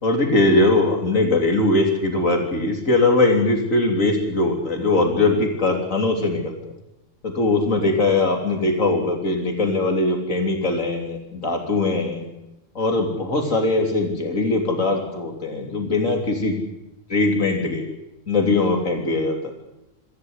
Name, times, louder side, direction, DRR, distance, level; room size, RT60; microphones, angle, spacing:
voice 1, 0.0-6.6 7.2-12.3 12.8-16.5 17.1-17.8 18.3-19.4, left 2 dB, 80° left, 3 dB, 3.8 m, -21 dB
25.5 x 15.5 x 8.1 m, 0.94 s
omnidirectional pair, 1.3 m